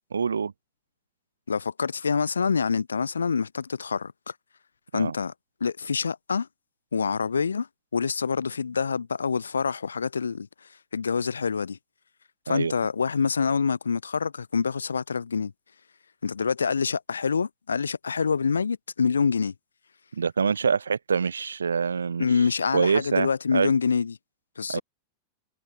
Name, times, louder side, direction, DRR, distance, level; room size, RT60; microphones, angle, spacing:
voice 1, 0.1-0.5 4.9-5.1 12.5-12.7 20.1-22.3 22.7-23.7 24.7-24.8, right 6 dB, 75° right, 1.3 m, -25 dB
voice 2, 1.5-4.3 4.9-5.3 5.6-6.5 6.9-7.7 7.9-10.5 10.9-11.8 12.5-15.5 16.2-19.5 22.2-24.2 24.6-24.8, left 5 dB, 75° left, 1.7 m, -26 dB
figure-of-eight pair, 90°, 0 cm